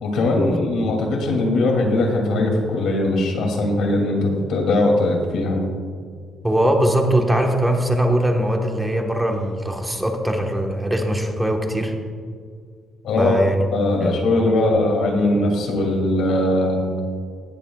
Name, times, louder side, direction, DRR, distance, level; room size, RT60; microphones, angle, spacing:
voice 1, 0.0-5.6 13.0-13.3 13.7-16.8, left 2 dB, 75° left, 1 dB, 2.6 m, -20 dB
voice 2, 6.4-11.9 13.2-13.6 14.0-14.2, right 1 dB, 5° right, 2 dB, 1.3 m, -21 dB
17.5 x 11.5 x 2.4 m, 2.1 s
cardioid pair, 115°, 0 cm